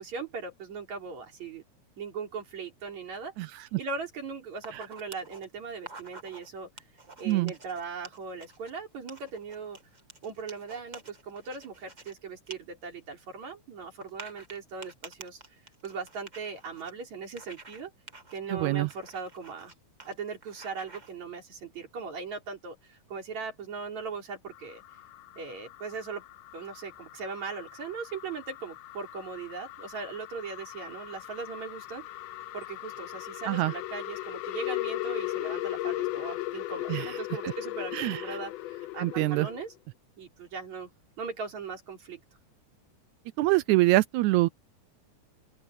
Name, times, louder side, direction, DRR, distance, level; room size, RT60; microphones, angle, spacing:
voice 1, 0.0-1.6 2.0-3.3 3.8-6.7 7.2-9.8 10.2-15.4 15.8-17.9 18.3-19.7 20.1-24.8 25.4-26.2 26.5-32.1 32.5-39.7 40.2-40.9 41.2-42.2, right 5 dB, 60° right, 5.5 m, -39 dB
voice 2, 3.4-3.8 4.7-4.8 7.2-7.5 18.5-18.9 33.4-33.7 36.9-37.2 37.4-37.5 37.9-38.4 39.0-39.5 43.4-44.5, right 19 dB, 80° right, 1.8 m, -25 dB
sound 1, 4.5-5.4 5.8-6.5 6.8-8.7 9.1-12.1 12.5-12.6 12.9-13.0 14.0-16.9 17.4-17.8 18.1-18.4 18.9-19.7 20.0-20.1 20.4-21.1, right 3 dB, 20° right, 1.2 m, -48 dB
sound 2, 24.5-39.7, left 16 dB, 75° left, 1.6 m, -38 dB
open air
omnidirectional pair, 3.6 m